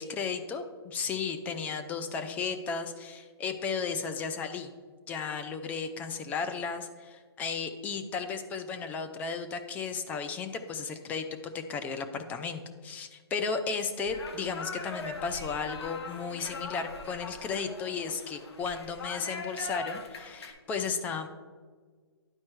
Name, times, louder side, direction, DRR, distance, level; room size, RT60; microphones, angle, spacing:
voice 1, 0.0-4.7 5.1-11.3 11.5-21.3, left 5 dB, 10° left, 7 dB, 0.4 m, -34 dB
sound 1, 14.1-20.5, left 3 dB, 70° left, 1.3 m, -41 dB
10.5 x 4.3 x 4.6 m, 1.5 s
hypercardioid pair, 145°, 14 cm